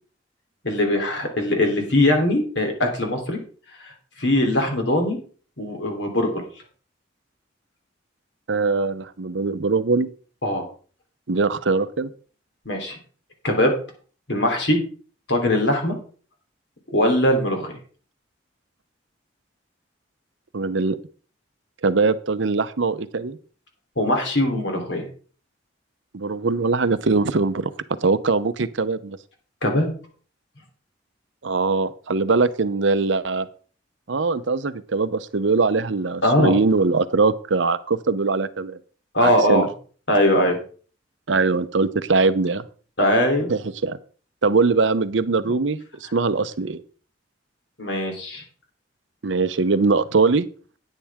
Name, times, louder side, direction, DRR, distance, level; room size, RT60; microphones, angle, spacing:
voice 1, 0.6-3.4 3.8-3.9 4.2-5.2 5.6-6.4 10.4-10.6 12.6-13.0 13.4-13.7 14.3-14.8 15.3-16.0 16.9-17.7 24.0-25.0 29.6-29.9 36.2-36.6 39.1-39.7 40.1-40.6 43.0-43.5 45.4-45.5 47.8-48.4, left 1 dB, 70° left, 2 dB, 3.1 m, -21 dB
voice 2, 8.5-10.1 11.3-12.1 20.5-21.0 21.8-23.4 26.1-27.7 28.0-29.2 31.4-33.5 34.1-38.8 39.2-39.7 41.3-42.6 43.5-44.0 44.4-46.8 49.2-50.5, right 4 dB, 85° right, 13 dB, 0.7 m, -21 dB
10.0 x 9.9 x 3.6 m, 0.41 s
head